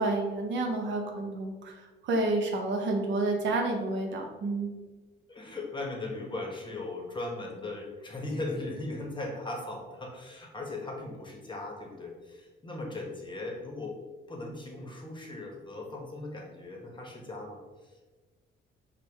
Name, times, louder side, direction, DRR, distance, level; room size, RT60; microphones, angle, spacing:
voice 1, 0.0-1.7 2.0-4.7, right 2 dB, 70° right, 2 dB, 0.7 m, -29 dB
voice 2, 5.3-14.0 14.3-18.2, left 2 dB, 25° left, 0 dB, 0.8 m, -38 dB
4.4 x 2.1 x 3.3 m, 1.3 s
cardioid pair, 90°, 20 cm